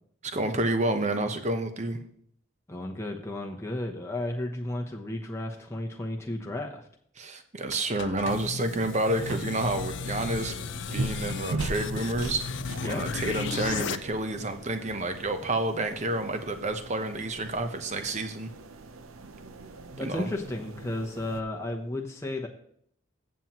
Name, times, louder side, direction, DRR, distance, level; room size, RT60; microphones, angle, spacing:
voice 1, 0.2-2.0 7.2-10.5 10.9-12.4 12.8-18.5 20.0-20.3, right 2 dB, 35° right, 8 dB, 0.9 m, -29 dB
voice 2, 2.7-6.8 12.8-13.0 20.0-22.5, left 1 dB, 15° left, 1 dB, 0.8 m, -33 dB
sound 1, 7.7-14.0, left 5 dB, 60° left, 0.4 m, -34 dB
sound 2, 9.1-21.4, right 2 dB, 85° right, 0.7 m, -40 dB
14.5 x 7.3 x 3.0 m, 0.65 s
head